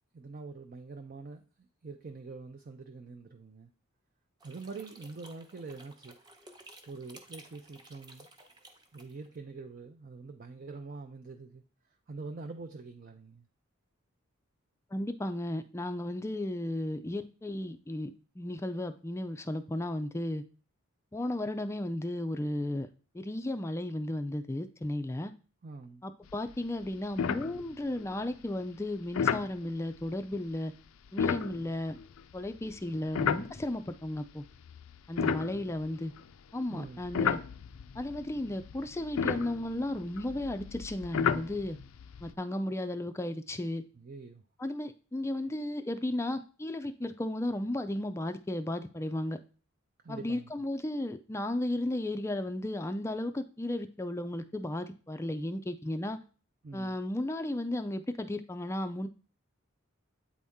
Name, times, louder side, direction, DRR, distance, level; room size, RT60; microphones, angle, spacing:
voice 1, 0.1-1.4 1.8-3.7 4.4-6.2 6.9-8.3 8.9-11.6 12.1-13.5 25.6-26.0 35.1-35.6 36.7-37.1 44.0-44.4 50.0-50.5 56.6-57.0, right 3 dB, 45° right, 5 dB, 0.5 m, -45 dB
sound 1, 4.4-9.4, right 2 dB, 20° right, 0.8 m, -54 dB
voice 2, 14.9-18.1 18.4-20.4 21.1-22.9 23.1-25.3 26.0-30.7 31.1-32.0 32.3-34.4 35.1-36.1 36.5-37.4 38.0-41.8 42.2-43.8 44.6-49.4 50.1-56.2 56.7-59.1, left 1 dB, 15° left, 9 dB, 0.3 m, -34 dB
sound 2, 26.3-26.6 26.8-26.9 27.2-28.0 29.1-29.5 31.1-34.0 34.6-36.3 36.9-42.3, left 7 dB, 85° left, 0.4 m, -33 dB
8.4 x 4.1 x 3.6 m, 0.37 s
head